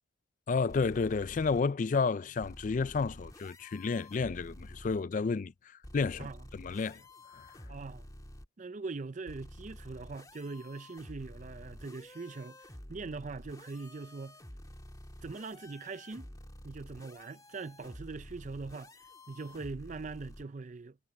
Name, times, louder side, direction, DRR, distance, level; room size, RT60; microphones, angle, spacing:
voice 1, 0.5-7.0 7.3-7.5, left 4 dB, 45° left, 0.4 m, -31 dB
sound 1, 0.7-1.6 2.4-5.0 5.8-8.5 9.3-20.4, left 1 dB, 20° left, 2.3 m, -50 dB
voice 2, 7.7-8.1 8.6-12.6 12.9-14.4 15.2-16.3 16.6-18.9 19.3-21.0, right 3 dB, 40° right, 0.5 m, -42 dB
head